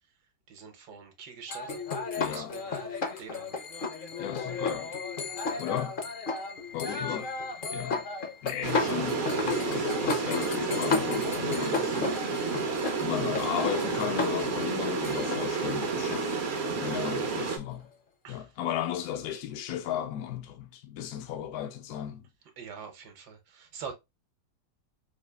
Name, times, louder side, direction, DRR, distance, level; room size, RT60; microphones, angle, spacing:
voice 1, 0.5-1.8 2.1-3.5 5.4-5.6 6.9-7.2 18.2-18.4 22.6-23.9, right 6 dB, 70° right, 1.5 m, -45 dB
sound 1, 1.5-17.8, left 4 dB, 45° left, 0.7 m, -34 dB
voice 2, 2.2-2.6 4.2-4.9 5.6-5.9 6.7-7.3 7.7-8.0 8.4-12.2 13.0-16.4 16.8-17.9 18.3-22.2, left 10 dB, 70° left, 1.0 m, -35 dB
sound 2, 8.6-17.6, right 4 dB, 55° right, 0.8 m, -30 dB
4.9 x 2.4 x 2.3 m
omnidirectional pair, 1.8 m